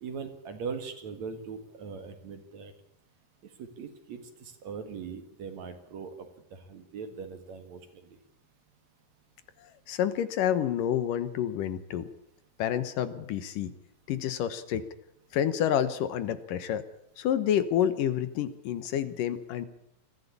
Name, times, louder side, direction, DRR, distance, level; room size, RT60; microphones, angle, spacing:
voice 1, 0.0-2.7 3.4-8.2, right 5 dB, 60° right, 8 dB, 2.7 m, -41 dB
voice 2, 9.9-12.1 12.6-13.7 14.1-14.9 15.3-16.8 17.2-19.7, left 10 dB, 70° left, 12 dB, 2.7 m, -28 dB
21.5 x 15.0 x 8.4 m, 0.76 s
omnidirectional pair, 4.1 m